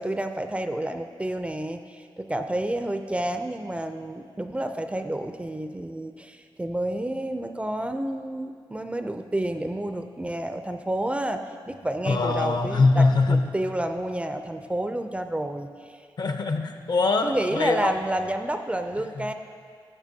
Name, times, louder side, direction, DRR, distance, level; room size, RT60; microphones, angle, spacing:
voice 1, 0.0-15.7 17.2-19.3, right 1 dB, 15° right, 7 dB, 0.4 m, -30 dB
voice 2, 12.1-13.5 16.2-18.0 19.1-19.3, left 3 dB, 55° left, 6 dB, 0.6 m, -23 dB
13.5 x 8.5 x 2.7 m, 2.1 s
wide cardioid pair, 115°, 9 cm